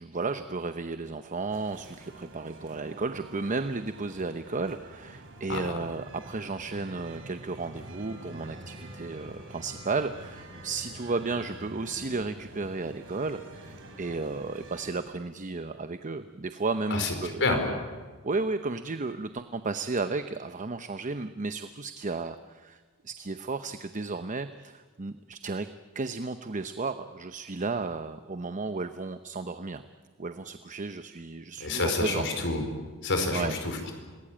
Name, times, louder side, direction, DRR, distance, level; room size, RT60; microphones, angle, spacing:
voice 1, 0.0-17.5 18.2-25.7 25.9-29.8 30.2-32.3 33.3-33.5, right 3 dB, 35° right, 9 dB, 0.8 m, -33 dB
sound 1, 1.5-14.9, right 1 dB, 60° right, 5.0 m, -47 dB
voice 2, 31.6-32.6 33.0-33.9, left 3 dB, 55° left, 5 dB, 4.7 m, -28 dB
26.5 x 20.0 x 8.7 m, 1.4 s
head